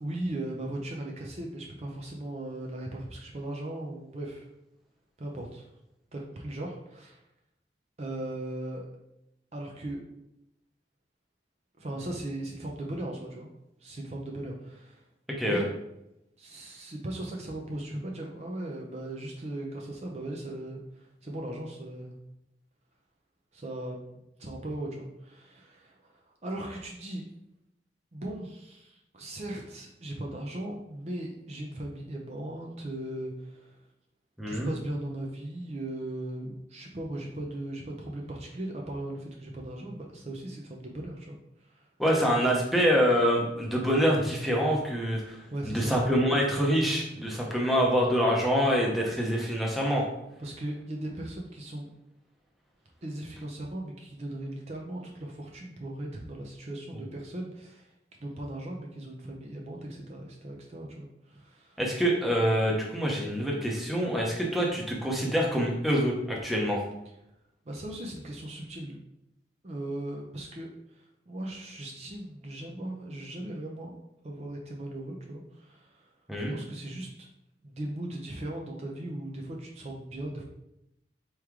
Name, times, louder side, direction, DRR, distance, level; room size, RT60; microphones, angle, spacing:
voice 1, 0.0-4.5 5.2-5.7 6.1-7.2 8.0-8.9 9.5-10.0 11.8-13.5 13.8-15.1 15.5-15.7 16.4-22.2 23.5-27.2 28.1-33.8 34.5-41.9 45.5-45.9 50.4-51.9 53.0-57.9 58.2-61.8 67.7-69.0 69.6-73.9 74.2-76.1 76.5-77.3 77.6-80.4, right 1 dB, 40° right, 0 dB, 0.6 m, -38 dB
voice 2, 34.4-34.7 42.0-45.4 45.6-50.0 61.8-66.8 76.3-76.5, equal, ahead, -3 dB, 0.8 m, -26 dB
4.6 x 3.1 x 3.6 m, 0.85 s
head